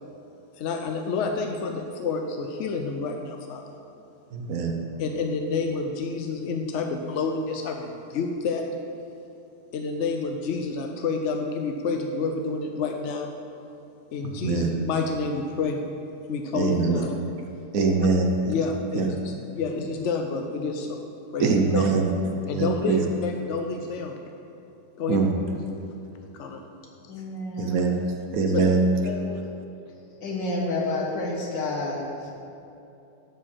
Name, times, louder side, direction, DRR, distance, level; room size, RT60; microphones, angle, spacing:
voice 1, 0.6-3.6 5.0-8.6 9.7-13.3 14.1-15.8 16.3-17.1 18.5-21.0 21.3-21.9 22.5-24.2 25.0-25.2 26.3-26.6 28.5-28.6, left 4 dB, 65° left, 4 dB, 0.7 m, -29 dB
voice 2, 4.3-4.7 14.2-14.7 16.5-17.0 17.7-18.5 18.9-19.1 21.4-22.1 22.5-23.0 25.1-25.3 27.6-28.0 28.3-28.9, right 4 dB, 60° right, 2 dB, 1.2 m, -23 dB
voice 3, 27.1-27.9 28.4-28.5 29.0-29.2 30.2-32.3, left 2 dB, 90° left, -2 dB, 2.3 m, -30 dB
11.5 x 4.9 x 7.4 m, 2.7 s
omnidirectional pair, 1.9 m